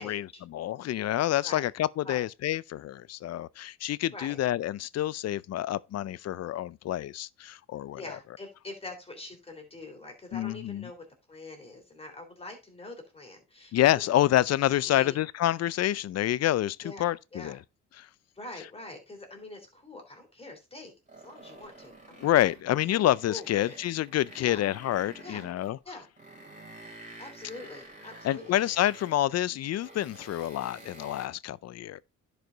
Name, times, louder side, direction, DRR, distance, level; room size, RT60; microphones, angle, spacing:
voice 1, 0.0-8.0 10.3-10.9 13.7-17.6 18.0-18.1 22.2-25.8 28.2-32.0, left 13 dB, 60° left, 0.5 m, -28 dB
voice 2, 7.9-13.7 14.8-15.2 16.8-17.6 18.3-20.9 21.2-22.2 23.3-23.7 24.4-24.7 25.2-25.4 25.8-26.1 27.2-28.6, left 2 dB, 20° left, 3.4 m, -44 dB
sound 1, 21.1-22.7 23.0-25.8 26.2-29.2 29.6-31.3, right 2 dB, 25° right, 3.9 m, -50 dB
10.5 x 5.1 x 3.9 m
cardioid pair, 90°, 30 cm